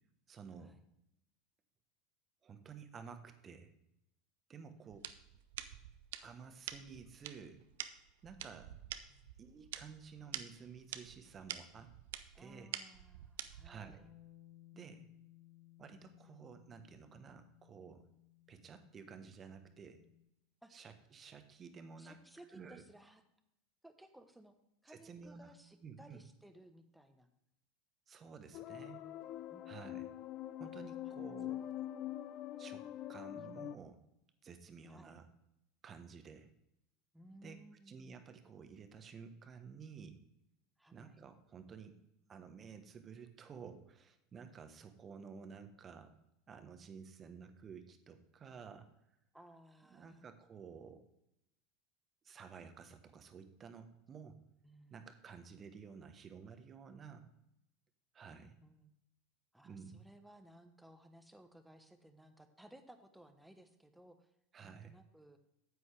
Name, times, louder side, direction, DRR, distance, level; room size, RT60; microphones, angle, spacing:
voice 1, 0.3-0.8 2.4-3.7 4.5-5.0 6.2-7.6 8.2-8.7 9.4-11.9 12.4-12.7 13.6-14.0 14.7-15.1 15.8-18.1 18.5-20.0 20.7-22.2 22.5-22.8 24.9-25.5 25.8-26.2 28.1-29.1 29.7-30.1 30.6-31.6 32.6-32.8 33.1-34.0 34.4-35.3 35.8-36.5 37.4-37.6 37.9-40.2 40.9-42.0 42.3-46.1 46.5-48.9 49.9-51.0 52.2-54.4 54.9-57.3 58.1-58.5 59.6-60.1 64.5-65.0, right 6 dB, 30° right, 8 dB, 1.1 m, -52 dB
voice 2, 4.7-5.0 9.1-9.3 12.3-14.1 20.6-20.7 22.0-23.2 23.8-24.5 24.8-27.3 29.5-29.8 31.0-31.1 34.9-35.2 37.1-38.3 40.8-41.2 49.3-50.3 54.6-55.1 58.3-58.9 59.5-64.3 64.6-65.4, right 1 dB, 5° right, 8 dB, 1.1 m, -60 dB
sound 1, 4.9-14.0, right 11 dB, 70° right, 0.6 m, -48 dB
Bass guitar, 14.0-20.2, left 15 dB, 30° left, 3.1 m, -62 dB
sound 2, 28.5-33.8, left 13 dB, 50° left, 0.5 m, -44 dB
9.5 x 8.4 x 3.4 m, 0.83 s
figure-of-eight pair, 80°, 0 cm